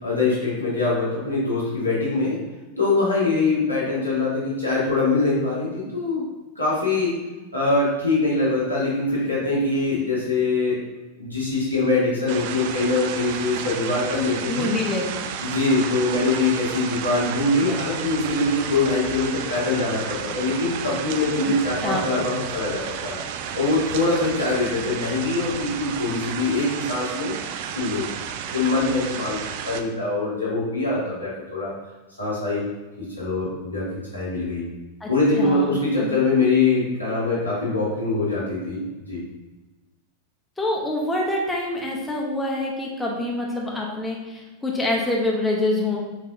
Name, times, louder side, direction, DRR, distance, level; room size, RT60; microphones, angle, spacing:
voice 1, 0.0-2.4 2.8-6.2 6.5-7.1 7.5-10.8 11.2-14.7 15.4-23.2 23.5-27.4 27.7-28.1 28.5-29.4 29.6-31.7 32.2-32.6 33.0-33.8 34.1-34.7 35.1-39.2, left 3 dB, 90° left, -8 dB, 1.4 m, -23 dB
sound 1, 12.3-29.8, right 8 dB, 50° right, 0.3 m, -32 dB
voice 2, 14.5-15.3 21.4-21.5 21.8-22.1 35.0-35.1 35.4-36.1 40.6-46.0, left 2 dB, 5° left, -2 dB, 0.8 m, -26 dB
6.3 x 2.7 x 2.6 m, 1.1 s
figure-of-eight pair, 90°, 0 cm